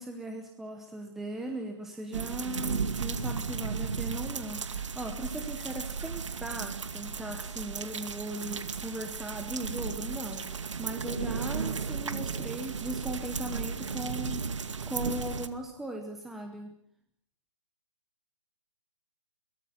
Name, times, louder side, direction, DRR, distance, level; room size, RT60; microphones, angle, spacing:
voice 1, 0.0-16.7, right 1 dB, ahead, 4 dB, 0.9 m, -38 dB
sound 1, 2.1-15.5, right 5 dB, 70° right, 2.3 m, -35 dB
23.5 x 19.0 x 9.4 m, 0.66 s
hypercardioid pair, 170°, 16 cm